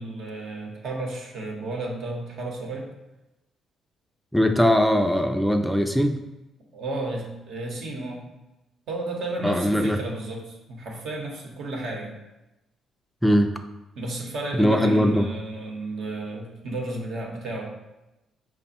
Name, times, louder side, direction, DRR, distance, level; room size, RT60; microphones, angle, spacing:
voice 1, 0.0-2.9 6.7-8.3 8.9-12.1 14.0-17.7, right 2 dB, 75° right, 0 dB, 0.9 m, -32 dB
voice 2, 4.3-6.2 9.4-10.0 13.2-13.5 14.6-15.3, equal, ahead, 5 dB, 0.3 m, -20 dB
5.0 x 2.2 x 4.1 m, 0.97 s
cardioid pair, 90°, 0 cm